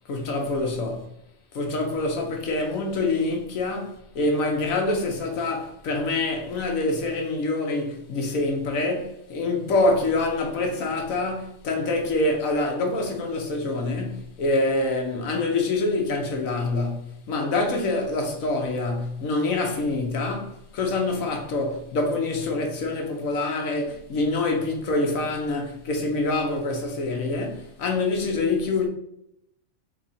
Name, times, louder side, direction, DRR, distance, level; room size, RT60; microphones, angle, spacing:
voice 1, 0.1-1.1 1.5-28.9, left 2 dB, 70° left, 1.3 m, -26 dB
4.4 x 2.7 x 4.1 m
omnidirectional pair, 1.5 m